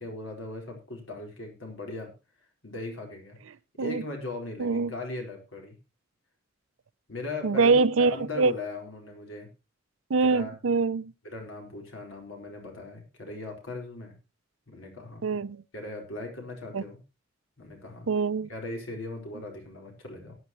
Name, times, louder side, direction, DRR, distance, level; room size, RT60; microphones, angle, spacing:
voice 1, 0.0-2.1 2.6-3.4 3.8-5.7 7.1-9.5 10.2-10.5 11.2-14.1 14.7-15.3 15.7-17.0 17.6-18.1 18.5-20.3, left 2 dB, 75° left, 4.5 m, -38 dB
voice 2, 4.6-4.9 7.4-8.5 10.1-11.1 15.2-15.6 16.7-16.8 18.1-18.5, right 4 dB, 80° right, 0.5 m, -24 dB
18.5 x 9.5 x 3.0 m
head